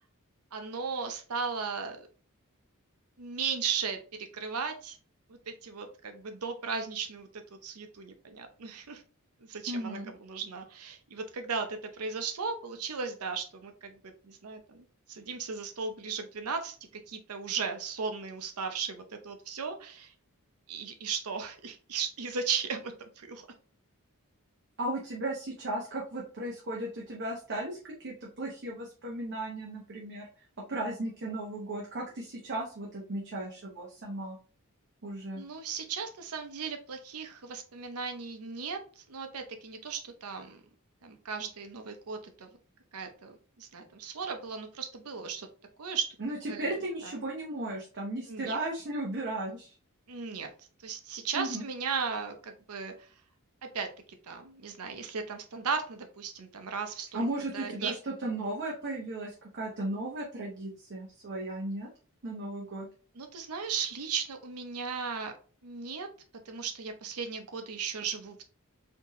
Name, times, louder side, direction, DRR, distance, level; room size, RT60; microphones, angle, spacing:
voice 1, 0.5-2.1 3.2-4.0 4.3-5.0 5.3-9.0 9.5-20.1 20.7-23.4 35.3-40.6 41.0-42.5 42.9-45.5 45.8-46.2 46.5-46.8 47.0-47.1 48.3-48.6 50.1-50.5 50.8-52.9 53.6-53.9 54.2-57.2 57.5-57.9 63.2-65.3 65.6-66.1 66.5-68.4, right 5 dB, 85° right, 6 dB, 0.7 m, -36 dB
voice 2, 9.7-10.1 24.8-30.3 30.7-34.4 35.0-35.4 46.2-49.7 51.3-51.6 57.1-61.9 62.2-62.9, right 1 dB, 55° right, -2 dB, 0.9 m, -35 dB
4.4 x 2.8 x 3.0 m, 0.39 s
head